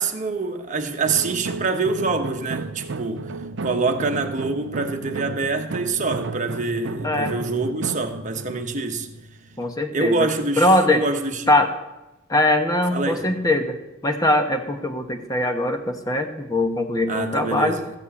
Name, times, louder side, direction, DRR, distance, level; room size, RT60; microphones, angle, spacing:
voice 1, 0.0-3.3 3.6-9.1 9.9-11.5 12.9-13.2 17.1-17.8, right 3 dB, 35° right, 1.1 m, -25 dB
sound 1, 1.0-9.8, right 4 dB, 60° right, 0.5 m, -33 dB
voice 2, 9.6-10.3 10.6-11.0 11.5-11.7 12.3-13.8 14.0-17.8, left 1 dB, 20° left, 1.0 m, -21 dB
13.5 x 5.4 x 8.4 m
head